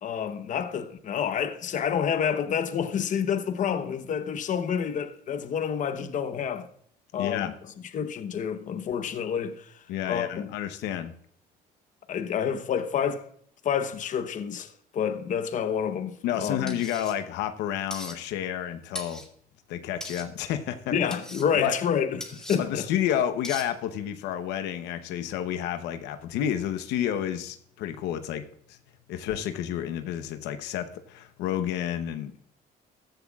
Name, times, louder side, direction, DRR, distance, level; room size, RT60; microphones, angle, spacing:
voice 1, 0.0-6.7 7.1-7.5 7.9-9.7 10.1-10.5 12.1-13.3 13.6-16.8 20.9-22.9, left 8 dB, 50° left, 1.0 m, -28 dB
voice 2, 7.2-7.5 9.9-11.1 16.2-19.2 19.7-20.9 21.5-21.8 22.6-28.4 28.7-28.8 29.1-32.3, left 10 dB, 90° left, 0.8 m, -30 dB
sound 1, 16.7-17.1 17.9-18.2 18.9-19.3 20.0-20.3 21.1-21.5 22.2-22.6 23.4-23.7, left 1 dB, 5° left, 1.9 m, -39 dB
14.5 x 10.5 x 2.4 m
cardioid pair, 110°, 17 cm